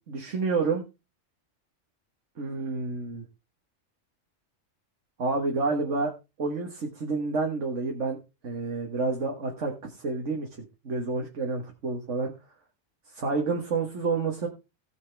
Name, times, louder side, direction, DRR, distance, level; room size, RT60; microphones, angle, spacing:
voice 1, 0.1-0.8 2.4-3.3 5.2-6.1 6.4-8.2 8.4-10.5 10.8-12.3 13.1-14.5, right 4 dB, 75° right, 1 dB, 1.8 m, -29 dB
17.5 x 6.5 x 3.4 m, 0.28 s
omnidirectional pair, 1.3 m